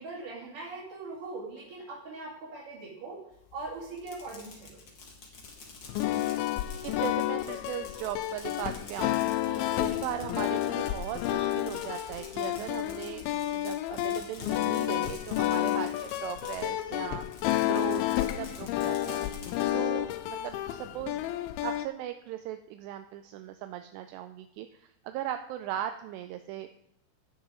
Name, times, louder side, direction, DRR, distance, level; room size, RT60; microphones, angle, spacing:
voice 1, 0.0-3.2 3.5-4.8 15.6-15.9 19.5-20.0, right 3 dB, 55° right, -8 dB, 4.1 m, -41 dB
Fireworks, 3.9-16.8 17.2-19.7, left 3 dB, 50° left, 1.3 m, -49 dB
sound 1, 5.8-21.9, left 14 dB, 85° left, 2.2 m, -30 dB
voice 2, 6.8-13.3 13.5-15.9 16.2-19.3 19.7-21.2 21.6-26.7, right 12 dB, 85° right, 8 dB, 2.6 m, -38 dB
16.5 x 7.1 x 3.7 m, 0.77 s
omnidirectional pair, 4.9 m